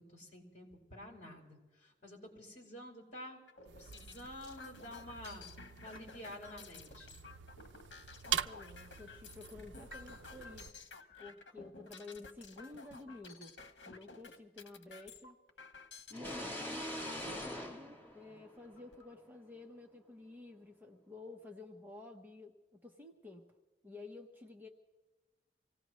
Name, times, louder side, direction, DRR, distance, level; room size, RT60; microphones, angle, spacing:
voice 1, 0.1-3.4 3.8-7.2, left 1 dB, 45° left, -1 dB, 4.6 m, -50 dB
sound 1, 3.5-16.3 17.0-17.5 18.1-18.2 18.5-19.1, left 4 dB, 80° left, 1.3 m, -54 dB
sound 2, 3.7-10.7, right 9 dB, 80° right, 0.5 m, -44 dB
voice 2, 8.3-10.7 11.2-13.5 13.9-15.4 16.1-23.4 23.8-24.7, left 2 dB, 10° right, 0 dB, 1.0 m, -52 dB
sound 3, 16.1-18.9, left 1 dB, 10° left, 2.0 m, -43 dB
25.5 x 18.0 x 3.1 m, 1.2 s
head